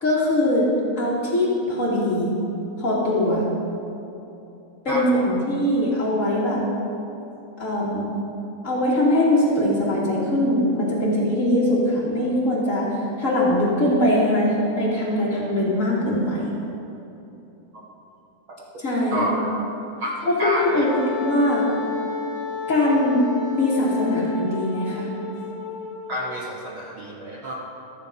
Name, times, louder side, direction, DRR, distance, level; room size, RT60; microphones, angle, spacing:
voice 1, 0.0-0.7 1.0-2.3 2.8-3.4 4.8-6.6 7.6-8.1 8.6-16.5 18.8-19.3 20.3-20.9 21.2-21.7 22.7-25.1, left 1 dB, 25° left, -8 dB, 2.5 m, -21 dB
voice 2, 4.9-5.3 18.7-18.8 19.1-19.5 20.0-20.8 26.1-27.5, right 1 dB, 70° right, -3 dB, 1.2 m, -28 dB
Wind instrument woodwind instrument, 20.5-26.5, left 6 dB, 75° left, 1.6 m, -32 dB
14.0 x 7.3 x 5.2 m, 2.9 s
omnidirectional pair, 3.7 m